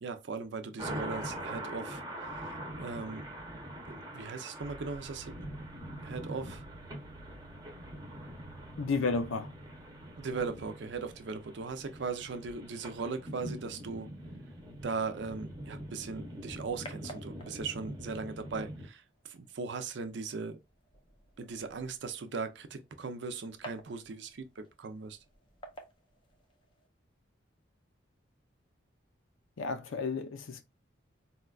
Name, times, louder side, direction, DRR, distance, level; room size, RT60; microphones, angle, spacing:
voice 1, 0.0-3.2 3.8-5.5 6.0-6.6 10.2-14.1 14.8-20.6 21.4-25.2, right 4 dB, 65° right, 0.5 m, -39 dB
sound 1, 0.8-18.9, right 1 dB, 20° right, 0.6 m, -44 dB
sound 2, 4.6-15.4, right 2 dB, 85° right, 0.8 m, -56 dB
voice 2, 8.8-9.5 29.6-30.6, left 4 dB, 90° left, 0.5 m, -32 dB
sound 3, 15.9-26.9, right 1 dB, 25° left, 0.5 m, -54 dB
4.1 x 2.2 x 2.3 m
head